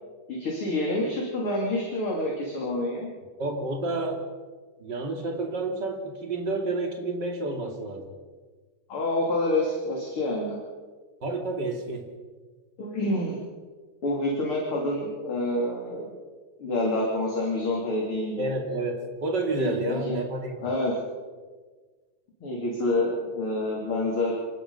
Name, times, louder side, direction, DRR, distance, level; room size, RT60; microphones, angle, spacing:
voice 1, 0.3-3.1 8.9-10.6 12.8-13.4 14.0-16.1 16.6-18.5 19.6-20.2 20.6-20.9 22.4-24.3, left 1 dB, 35° left, -2 dB, 3.3 m, -27 dB
voice 2, 3.4-4.3 4.8-8.1 11.2-12.0 18.4-20.6, right 2 dB, 30° right, 3 dB, 2.5 m, -30 dB
27.0 x 17.5 x 5.6 m, 1.4 s
omnidirectional pair, 4.9 m